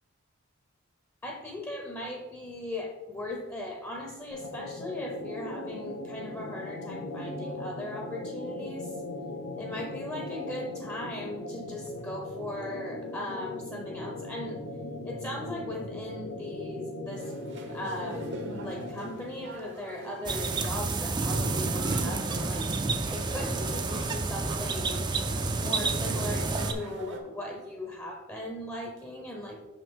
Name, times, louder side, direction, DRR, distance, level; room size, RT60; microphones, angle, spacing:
voice 1, 1.2-9.0 9.6-14.6 15.0-17.3 17.7-22.6 23.1-25.0 25.5-29.7, left 1 dB, 15° left, 1 dB, 0.7 m, -38 dB
sound 1, 4.3-19.4, left 2 dB, 80° left, 0.7 m, -39 dB
sound 2, 17.2-27.2, right 2 dB, 55° right, 0.8 m, -44 dB
sound 3, 20.2-26.7, right 3 dB, 20° right, 0.4 m, -29 dB
5.8 x 5.7 x 3.6 m, 1.1 s
head